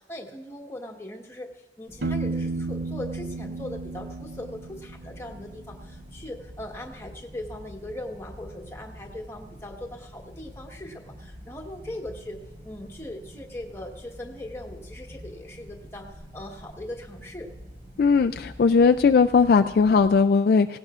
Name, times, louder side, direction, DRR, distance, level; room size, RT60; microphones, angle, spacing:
voice 1, 0.0-12.4 12.6-17.5, left 1 dB, 15° left, 1 dB, 1.2 m, -39 dB
sound 1, 1.9-20.2, equal, 45° right, 3.8 m, -46 dB
Piano, 2.0-5.7, right 3 dB, 75° right, 0.6 m, -33 dB
voice 2, 18.0-20.8, left 5 dB, 55° left, 7 dB, 0.3 m, -19 dB
17.5 x 17.0 x 2.5 m, 1.1 s
head